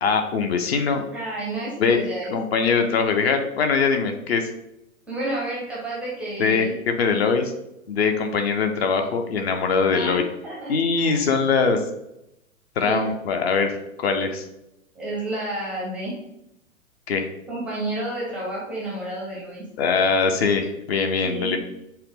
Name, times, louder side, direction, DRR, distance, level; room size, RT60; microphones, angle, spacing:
voice 1, 0.0-1.0 1.8-2.0 2.3-4.5 6.4-7.5 7.9-10.2 10.7-11.8 12.8-14.4 17.1-17.3 19.8-21.6, left 5 dB, 50° left, 6 dB, 0.6 m, -22 dB
voice 2, 1.1-2.3 5.1-6.7 9.9-10.7 11.0-11.2 12.8-13.0 14.9-16.1 17.5-19.6 21.2-21.6, right 1 dB, 5° right, -6 dB, 0.5 m, -30 dB
5.6 x 2.0 x 3.2 m, 0.85 s
figure-of-eight pair, 110°, 42 cm